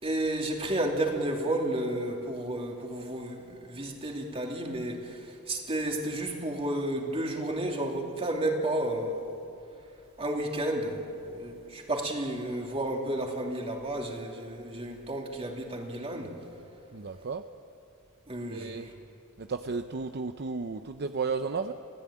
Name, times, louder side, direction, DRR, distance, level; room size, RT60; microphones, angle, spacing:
voice 1, 0.0-5.2 5.5-9.2 10.2-16.4 18.3-18.8, right 1 dB, 25° right, 1 dB, 2.8 m, -32 dB
voice 2, 16.9-17.4 18.5-18.9 19.4-21.7, right 4 dB, 50° right, 8 dB, 0.7 m, -33 dB
27.5 x 17.0 x 8.7 m, 2.7 s
head